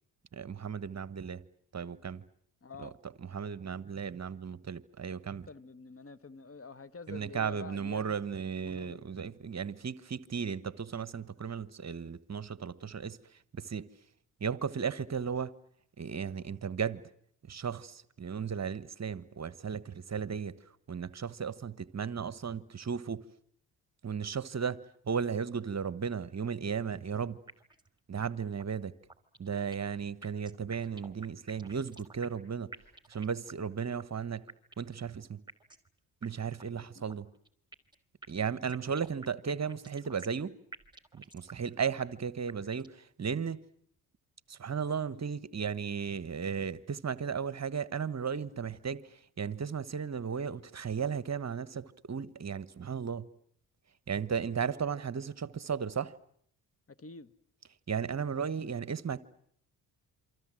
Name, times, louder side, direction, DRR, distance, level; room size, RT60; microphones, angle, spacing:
voice 1, 0.3-1.4 1.7-2.2 2.8-2.9 3.3-5.5 7.1-13.2 13.5-13.9 14.4-15.5 16.0-17.0 17.5-20.5 20.9-23.2 24.0-24.8 25.1-27.4 28.1-28.9 29.4-32.7 33.1-34.4 34.8-35.4 36.2-37.3 38.3-40.5 41.1-43.6 44.5-49.0 49.4-53.3 54.1-56.1 57.9-59.2, right 6 dB, 30° right, 1.3 m, -35 dB
voice 2, 2.6-2.9 5.4-8.2 8.6-9.1 36.8-37.2 56.9-57.3, left 4 dB, 25° left, 1.5 m, -48 dB
sound 1, 27.5-27.9 28.2-28.3 28.6-28.7 29.1-30.0 30.2-32.5 32.7-33.7 34.0-34.1 34.5-35.0 35.5-35.9 36.2-36.3 36.6-36.7 37.1-38.0 38.2-40.5 40.7-41.7 42.0-42.1 42.5-43.0, right 3 dB, 10° right, 2.8 m, -50 dB
28.0 x 25.0 x 7.7 m
hypercardioid pair, 50°, 50 cm